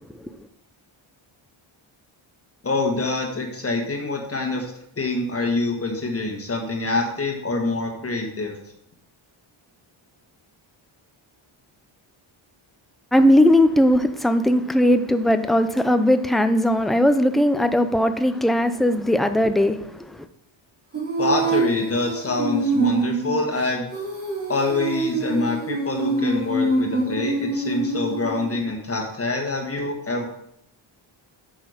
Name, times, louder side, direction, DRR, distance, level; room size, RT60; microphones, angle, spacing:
voice 1, 2.6-8.6 21.2-23.9 24.5-30.3, left 3 dB, 30° left, 1.4 m, -26 dB
voice 2, 13.1-20.3, left 1 dB, ahead, 0.4 m, -19 dB
Female singing, 20.9-28.6, right 2 dB, 25° right, 3.5 m, -25 dB
8.3 x 6.4 x 4.9 m
wide cardioid pair, 160°, 49 cm